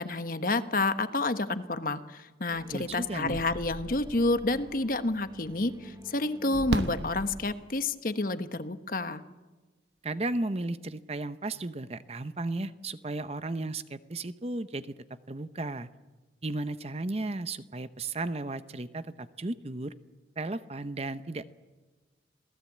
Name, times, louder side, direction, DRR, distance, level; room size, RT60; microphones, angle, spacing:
voice 1, 0.0-9.2, left 2 dB, 50° left, 10 dB, 1.1 m, -29 dB
sound 1, 2.5-7.5, equal, 20° right, 1.2 m, -45 dB
voice 2, 2.7-3.4 10.0-14.9 15.3-15.9 16.4-19.9 20.4-21.4, right 2 dB, 35° right, 13 dB, 0.8 m, -34 dB
Fireworks, 5.0-5.1 6.7-8.0 9.8-9.9 10.1-10.2, right 2 dB, 80° right, 1.2 m, -33 dB
27.0 x 17.5 x 8.5 m, 1.2 s
head